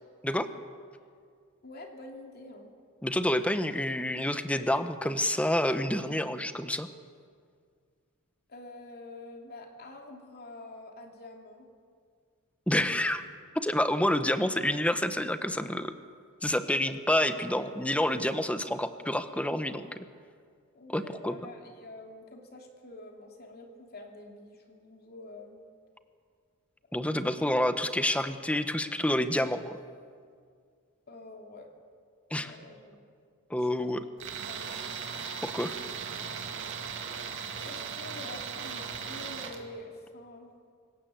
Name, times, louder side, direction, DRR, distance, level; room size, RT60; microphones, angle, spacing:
voice 1, 1.6-2.7 8.5-11.7 20.7-25.6 27.0-27.4 31.1-31.7 32.3-33.1 33.5-33.9 34.3-34.9 37.6-40.5, left 2 dB, 45° left, 2 dB, 2.8 m, -47 dB
voice 2, 3.0-6.9 12.7-13.2 13.5-15.9 16.4-20.0 20.9-21.4 26.9-29.8 32.3-32.5 33.5-34.0 35.4-35.7, left 1 dB, 5° left, 10 dB, 0.9 m, -28 dB
Tools, 34.2-39.6, right 6 dB, 60° right, 2.1 m, -38 dB
25.5 x 17.0 x 7.8 m, 2.1 s
head